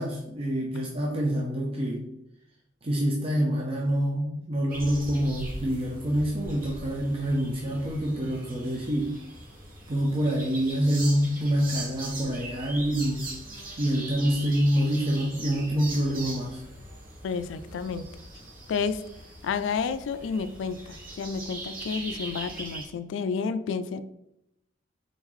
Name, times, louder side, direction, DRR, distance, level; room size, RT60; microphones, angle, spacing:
voice 1, 0.0-2.1 2.8-9.2 9.9-13.3 13.8-16.6, equal, 30° right, -1 dB, 0.5 m, -26 dB
sound 1, 4.7-22.9, right 2 dB, 50° right, 1.4 m, -41 dB
voice 2, 17.2-18.1 18.7-19.0 19.4-24.0, left 5 dB, 70° left, 13 dB, 0.3 m, -30 dB
3.8 x 3.7 x 3.1 m, 0.83 s
head